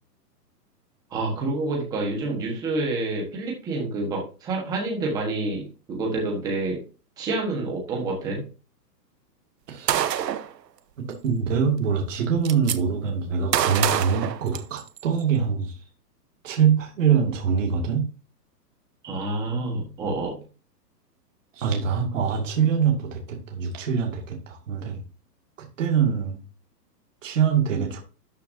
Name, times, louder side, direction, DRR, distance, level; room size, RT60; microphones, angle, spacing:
voice 1, 1.1-6.8 7.2-8.4 19.0-20.4, right 2 dB, 5° right, 0 dB, 1.3 m, -28 dB
voice 2, 9.7-10.2 11.0-15.7 16.4-18.1 21.5-25.0 25.8-26.4 27.2-28.0, right 7 dB, 50° right, 1 dB, 2.3 m, -24 dB
Gunshot gunfire, 9.9-10.5 11.7-11.8 12.1-12.8 13.5-15.0, right 10 dB, 75° right, 1.1 m, -25 dB
12.5 x 6.9 x 2.7 m, 0.34 s
hypercardioid pair, 180°, 49 cm